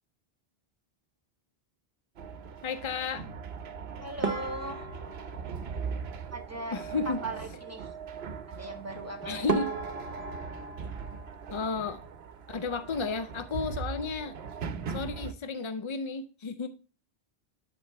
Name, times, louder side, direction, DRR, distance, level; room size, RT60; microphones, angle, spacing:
sound 1, 2.2-15.3, right 6 dB, 85° right, 0.9 m, -40 dB
voice 1, 2.6-3.3 6.7-7.2 9.2-9.7 11.5-12.0 12.5-14.4 14.9-16.7, left 4 dB, 50° left, 0.3 m, -33 dB
voice 2, 4.0-4.9 6.3-7.9 8.5-9.7, right 1 dB, 15° right, 1.0 m, -39 dB
sound 2, 4.2-6.7 8.9-9.0 9.5-12.2 12.5-13.3 13.6-13.8 14.1-14.2 14.8-15.1, right 4 dB, 40° right, 0.7 m, -36 dB
11.0 x 3.8 x 4.4 m
omnidirectional pair, 1.0 m